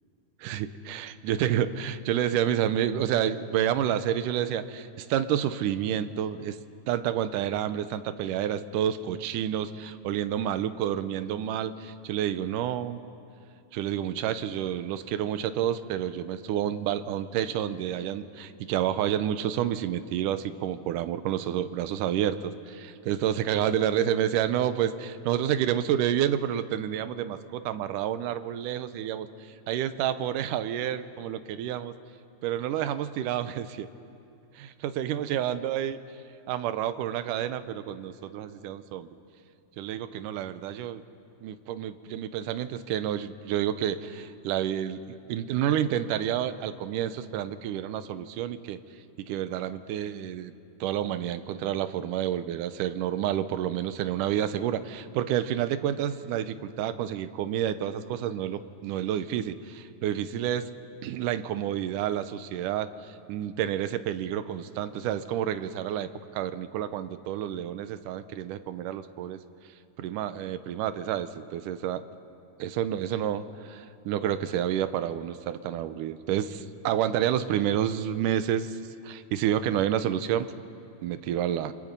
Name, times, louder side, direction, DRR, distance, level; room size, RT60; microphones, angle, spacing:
voice 1, 0.4-6.6 6.9-13.0 13.7-29.3 29.7-32.0 32.4-33.9 34.6-36.0 36.5-39.1 39.8-41.0 41.4-48.8 49.3-50.5 50.8-60.7 61.0-62.9 63.3-69.4 70.0-72.0 72.6-78.8 79.0-80.5 81.0-81.7, right 10 dB, 75° right, 11 dB, 2.3 m, -29 dB
27.5 x 25.0 x 5.3 m, 2.5 s
omnidirectional pair, 3.8 m